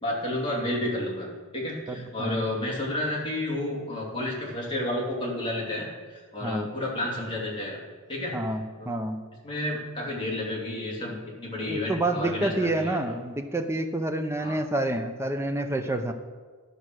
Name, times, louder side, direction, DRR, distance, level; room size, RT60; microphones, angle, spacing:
voice 1, 0.0-7.8 8.1-8.3 8.8-9.0 9.4-13.2 14.4-14.6, left 1 dB, 25° left, -3 dB, 2.6 m, -31 dB
voice 2, 1.9-2.4 6.4-6.7 8.3-9.2 11.7-16.1, right 1 dB, 10° right, 6 dB, 0.6 m, -28 dB
12.0 x 5.4 x 6.3 m, 1.5 s
head